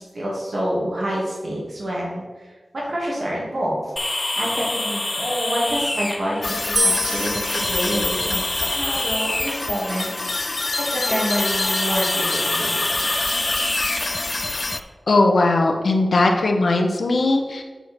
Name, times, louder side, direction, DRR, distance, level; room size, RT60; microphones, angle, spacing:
voice 1, 0.0-2.2 2.7-3.8 4.4-12.8, equal, 65° right, -5 dB, 2.1 m, -27 dB
sound 1, 4.0-14.8, left 1 dB, 35° left, 1.0 m, -28 dB
sound 2, 6.4-14.8, left 3 dB, 55° left, 0.3 m, -27 dB
sound 3, 6.8-10.0, equal, 35° right, 2.1 m, -28 dB
voice 2, 15.1-17.6, left 2 dB, 75° left, 3 dB, 0.9 m, -18 dB
8.2 x 4.5 x 4.4 m, 1.3 s
cardioid pair, 45°, 0 cm